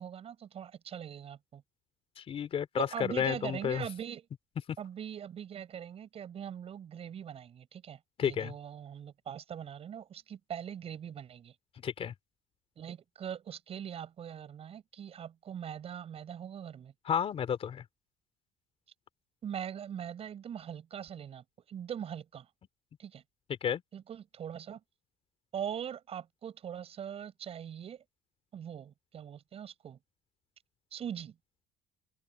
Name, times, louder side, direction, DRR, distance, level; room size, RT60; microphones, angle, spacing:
voice 1, 0.0-1.6 2.8-4.3 4.8-11.5 12.8-16.9 19.4-22.5 23.0-23.2 23.9-24.8 25.5-28.0 28.5-30.0 30.9-31.4, right 9 dB, 40° right, 7.4 m, -42 dB
voice 2, 2.2-3.8 8.2-8.5 11.8-12.1 17.1-17.8 23.5-23.8, left 8 dB, 40° left, 3.4 m, -31 dB
open air
cardioid pair, 125°, 15 cm